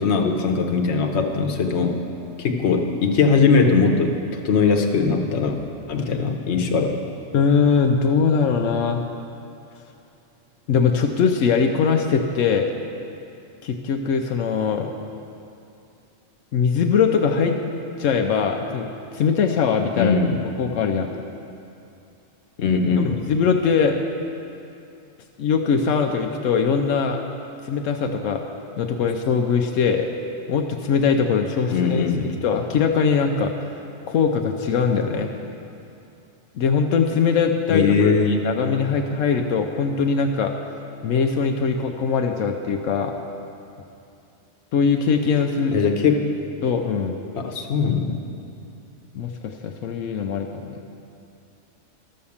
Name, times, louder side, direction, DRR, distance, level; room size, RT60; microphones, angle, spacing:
voice 1, 0.0-2.0 2.4-5.6 5.9-7.0 20.0-20.4 22.6-23.2 31.7-32.3 37.7-38.4 45.7-46.3 47.3-48.2, left 5 dB, 65° left, 4 dB, 1.2 m, -20 dB
voice 2, 7.3-9.0 10.7-12.7 13.6-14.9 16.5-17.6 18.0-18.9 19.1-20.2 20.6-21.1 23.0-24.0 25.4-27.2 27.6-28.4 28.8-30.1 30.5-33.7 34.1-35.3 36.6-40.5 41.0-43.1 44.7-45.7 46.6-47.2 49.1-50.8, left 6 dB, 85° left, 3 dB, 1.0 m, -21 dB
12.5 x 6.5 x 7.1 m, 2.7 s
omnidirectional pair, 1.3 m